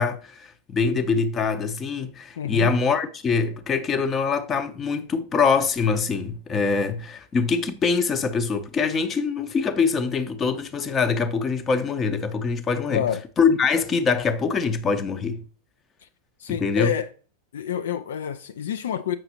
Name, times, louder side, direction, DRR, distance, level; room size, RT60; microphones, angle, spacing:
voice 1, 0.0-13.1 13.4-15.4 16.5-16.9, left 5 dB, 25° left, 0.7 m, -24 dB
voice 2, 2.4-2.7 12.9-13.2 16.0-16.1 16.4-17.1 17.5-19.2, left 9 dB, 60° left, 0.3 m, -28 dB
7.5 x 5.8 x 2.8 m
figure-of-eight pair, 90°, 0 cm